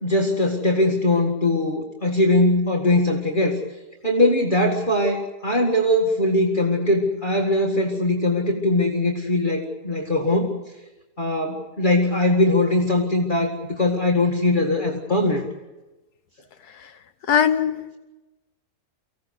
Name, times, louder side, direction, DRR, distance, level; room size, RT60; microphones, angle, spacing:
voice 1, 0.0-3.6 4.0-10.5 11.2-15.4, left 1 dB, 30° left, -1 dB, 2.1 m, -21 dB
voice 2, 17.3-18.0, left 8 dB, 75° left, 10 dB, 1.5 m, -20 dB
24.5 x 16.5 x 8.0 m, 1.1 s
omnidirectional pair, 1.7 m